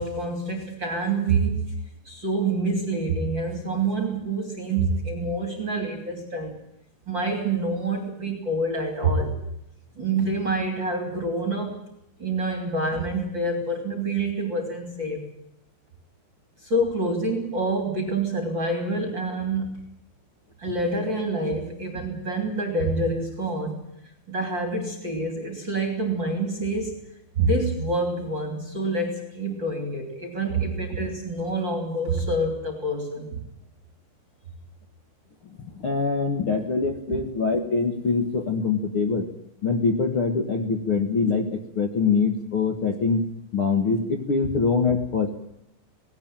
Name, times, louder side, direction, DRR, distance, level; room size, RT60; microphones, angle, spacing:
voice 1, 0.0-1.7 2.0-6.6 7.1-9.4 10.0-11.8 12.2-15.2 16.6-19.8 20.6-23.8 24.3-27.0 27.4-33.4 37.1-37.2, right 2 dB, 30° right, 4 dB, 3.2 m, -27 dB
voice 2, 35.7-39.3 39.6-45.5, left 4 dB, 80° left, 4 dB, 1.2 m, -24 dB
19.0 x 18.0 x 8.9 m, 0.78 s
omnidirectional pair, 5.3 m